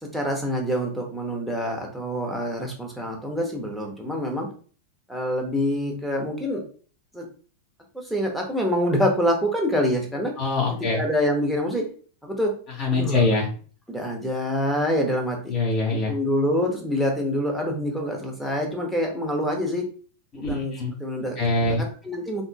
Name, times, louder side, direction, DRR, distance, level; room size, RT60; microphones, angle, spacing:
voice 1, 0.0-4.5 5.1-6.6 7.1-7.3 7.9-10.3 10.9-11.9 12.2-12.5 12.9-13.2 13.9-15.5 16.1-19.9 20.5-20.7 21.0-21.4 21.8-22.5, equal, ahead, -1 dB, 1.1 m, -26 dB
voice 2, 10.4-11.0 12.8-13.5 15.5-16.1 20.3-20.9 21.4-21.8, left 3 dB, 35° left, -3 dB, 1.8 m, -23 dB
4.0 x 3.5 x 2.2 m, 0.41 s
figure-of-eight pair, 90°, 0 cm